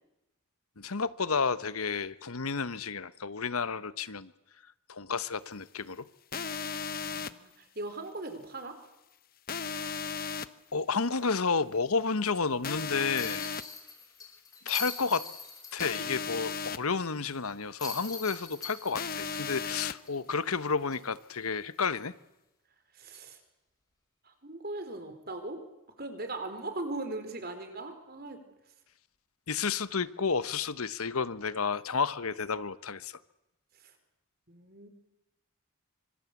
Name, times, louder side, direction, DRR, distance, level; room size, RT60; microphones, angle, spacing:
voice 1, 0.8-4.3 4.9-6.1 10.7-13.5 14.6-15.2 15.7-22.1 29.5-33.2, left 5 dB, 90° left, 1.1 m, -31 dB
sound 1, 6.3-7.3 9.5-10.5 12.6-13.6 15.8-16.8 18.9-19.9, left 6 dB, 40° left, 1.0 m, -35 dB
voice 2, 6.7-8.8 22.9-23.4 24.2-25.6 26.0-28.4 33.8-33.9 34.5-34.9, right 2 dB, 45° right, 4.3 m, -39 dB
sound 2, 13.2-16.4 16.7-16.8 17.8-20.5 20.9-21.0 23.1-23.3, left 5 dB, 15° left, 5.5 m, -42 dB
26.0 x 25.0 x 8.4 m
head